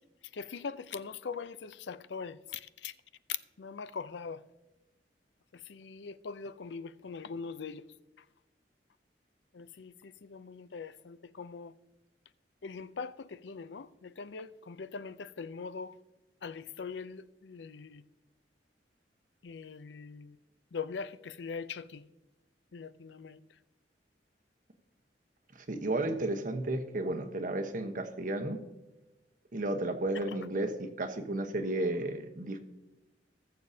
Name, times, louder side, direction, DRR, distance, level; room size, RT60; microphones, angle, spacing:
voice 1, 0.3-2.9 3.6-4.4 5.7-7.8 9.5-11.7 12.6-15.9 16.4-18.0 19.4-20.3 20.7-22.0 22.7-23.4, left 5 dB, 80° left, 0.5 m, -42 dB
voice 2, 25.7-28.6 29.5-32.6, right 2 dB, 50° right, 1.0 m, -33 dB
19.5 x 7.0 x 2.7 m
head